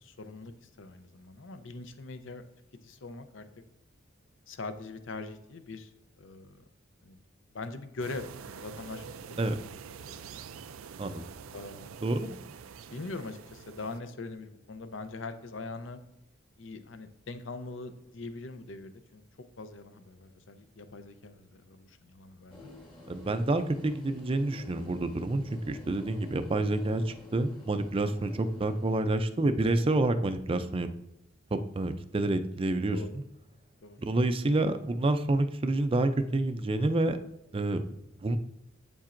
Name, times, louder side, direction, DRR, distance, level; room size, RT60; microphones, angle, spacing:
voice 1, 0.0-2.4 2.8-3.4 4.5-5.9 6.2-6.6 7.0-7.2 7.5-9.6 10.1-10.5 11.5-11.9 12.9-16.0 16.6-19.2 19.6-22.7 32.9-33.2 33.8-34.0, left 3 dB, 70° left, 9 dB, 0.6 m, -42 dB
sound 1, 8.0-14.0, right 6 dB, 85° right, 0.4 m, -46 dB
sound 2, 22.5-29.0, left 2 dB, 25° left, 1.2 m, -50 dB
voice 2, 23.1-30.9 31.5-33.0 34.0-37.2 37.5-37.8 38.2-38.4, right 2 dB, 25° right, 9 dB, 0.4 m, -28 dB
8.3 x 7.2 x 2.5 m, 0.88 s
head